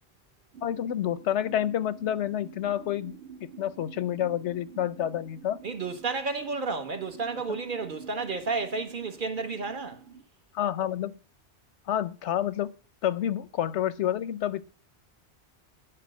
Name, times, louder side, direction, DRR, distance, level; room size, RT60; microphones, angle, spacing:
sound 1, 0.5-10.2, right 6 dB, 90° right, 1.8 m, -48 dB
voice 1, 0.6-3.2 3.6-5.6 7.5-7.6 10.5-11.2 11.9-12.7 13.0-14.7, left 11 dB, 90° left, 1.0 m, -29 dB
voice 2, 5.6-10.0, right 4 dB, 50° right, 1.2 m, -32 dB
10.0 x 4.9 x 7.6 m
omnidirectional pair, 1.1 m